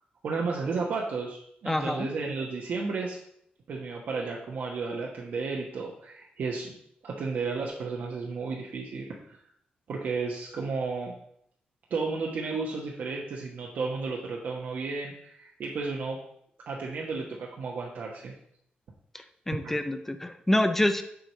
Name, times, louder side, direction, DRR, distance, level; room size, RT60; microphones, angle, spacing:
voice 1, 0.2-3.2 3.7-6.7 7.0-9.1 9.9-11.2 11.9-16.2 16.7-18.3 19.5-19.7, right 4 dB, 65° right, -2 dB, 1.2 m, -33 dB
voice 2, 1.7-2.1 19.1-21.0, left 1 dB, 10° left, 10 dB, 0.5 m, -27 dB
7.7 x 4.8 x 6.6 m, 0.70 s
wide cardioid pair, 170°, 3 cm